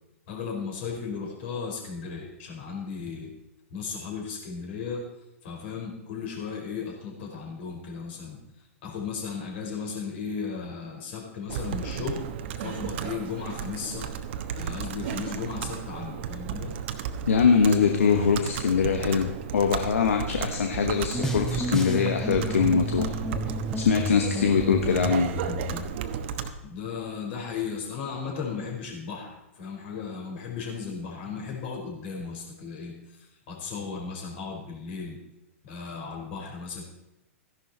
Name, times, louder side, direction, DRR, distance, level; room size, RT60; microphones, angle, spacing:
voice 1, 0.3-3.3 3.7-5.0 5.4-12.3 12.6-14.1 14.5-16.7 26.6-35.2 35.6-36.8, left 5 dB, 55° left, 0 dB, 5.1 m, -35 dB
Computer keyboard, 11.5-26.5, right 8 dB, 55° right, 1.2 m, -34 dB
voice 2, 17.3-23.1 23.7-25.3, left 6 dB, 70° left, 5 dB, 1.2 m, -23 dB
sound 1, 21.1-25.9, equal, 5° left, 1.6 m, -31 dB
14.5 x 11.5 x 4.5 m, 0.90 s
figure-of-eight pair, 105°, 7 cm